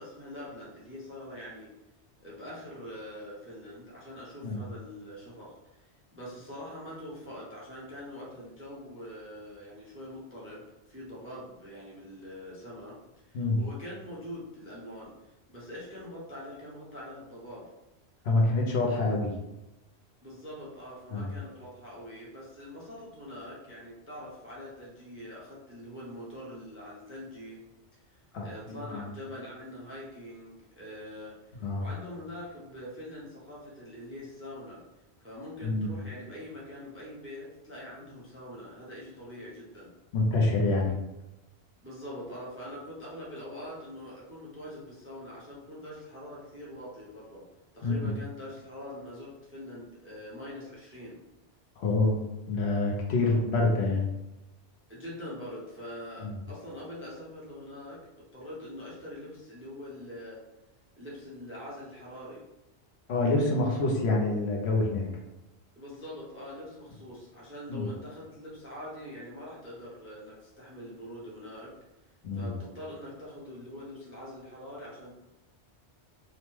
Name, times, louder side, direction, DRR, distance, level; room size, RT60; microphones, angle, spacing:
voice 1, 0.0-1.7 2.2-10.6 10.9-13.0 13.2-17.7 20.2-27.6 27.9-34.8 35.2-39.9 41.8-47.4 47.7-51.2 53.3-53.4 54.9-60.4 61.0-62.4 65.7-71.7 72.3-75.1, left 1 dB, 20° right, -5 dB, 0.4 m, -44 dB
voice 2, 18.2-19.3 21.1-21.3 28.3-29.1 31.6-31.8 35.6-35.9 40.1-41.0 47.8-48.1 51.8-52.2 52.5-54.1 56.2-56.4 63.1-65.1 67.7-67.9 72.2-72.5, left 2 dB, 70° left, -1 dB, 0.9 m, -27 dB
2.9 x 2.1 x 3.1 m, 0.96 s
omnidirectional pair, 1.2 m